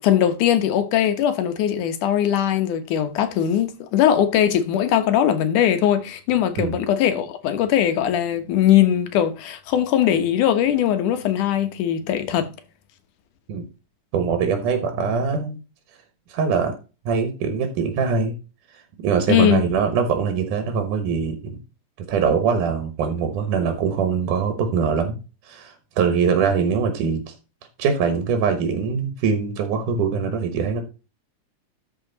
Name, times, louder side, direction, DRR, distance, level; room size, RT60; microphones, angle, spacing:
voice 1, 0.0-12.5 19.3-19.6, left 10 dB, 85° left, 2.7 m, -20 dB
voice 2, 14.1-15.6 16.3-16.7 17.1-18.4 19.0-21.6 22.1-25.2 25.5-27.2 27.8-30.8, right 6 dB, 90° right, 2.8 m, -22 dB
12.5 x 5.1 x 4.0 m
omnidirectional pair, 3.5 m